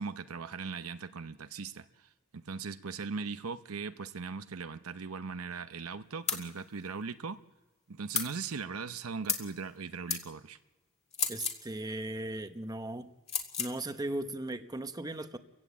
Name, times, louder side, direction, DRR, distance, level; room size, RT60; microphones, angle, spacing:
voice 1, 0.0-7.4 7.9-10.6, right 5 dB, 70° right, 10 dB, 0.8 m, -39 dB
sound 1, 6.3-6.5 8.1-8.3 9.3-9.5 10.1-10.2 11.1-11.6 13.3-13.7, left 6 dB, 30° left, 2.1 m, -32 dB
voice 2, 11.3-13.1 13.6-15.4, right 1 dB, 15° right, 8 dB, 0.9 m, -37 dB
30.0 x 16.0 x 8.2 m, 1.1 s
head